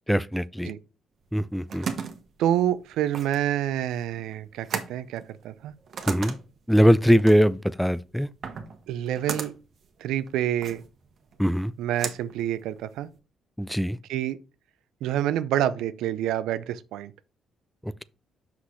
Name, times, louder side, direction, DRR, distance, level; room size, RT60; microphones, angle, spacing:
voice 1, 0.1-0.7 1.3-1.9 6.1-6.4 6.7-8.3 11.4-11.7 13.6-14.0 17.8-18.0, equal, ahead, 0.4 m, -21 dB
sound 1, 1.3-13.2, right 6 dB, 55° right, 1.1 m, -38 dB
voice 2, 2.4-5.7 8.9-9.5 10.0-10.8 11.8-13.1 14.1-14.4 15.0-17.1, right 11 dB, 90° right, 0.5 m, -27 dB
6.0 x 5.9 x 3.2 m
cardioid pair, 90°, 0 cm